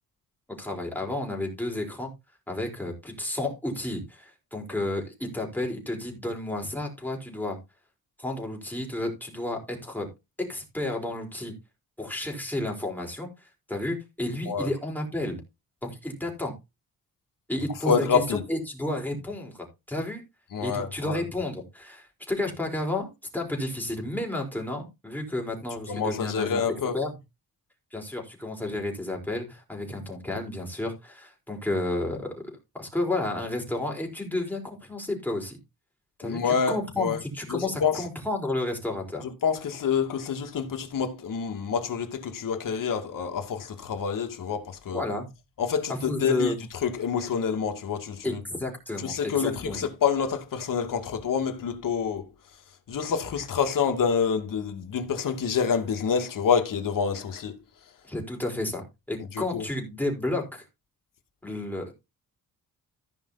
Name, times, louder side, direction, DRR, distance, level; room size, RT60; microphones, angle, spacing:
voice 1, 0.6-2.1 2.5-7.6 8.2-10.1 10.4-11.5 12.0-13.3 13.7-15.4 15.8-16.5 17.5-20.2 20.6-26.6 26.9-27.1 27.9-35.6 36.2-39.3 44.9-45.3 46.0-46.6 48.2-49.8 58.1-60.6 61.4-61.9, left 1 dB, 5° left, 4.3 m, -31 dB
voice 2, 17.9-18.4 20.5-21.2 25.9-27.0 36.2-37.2 37.5-38.0 39.2-45.1 45.6-46.5 46.8-48.4 49.0-52.3 52.9-57.6 59.3-59.6, left 6 dB, 65° left, 2.4 m, -27 dB
15.5 x 5.5 x 4.1 m
wide cardioid pair, 145°, 35 cm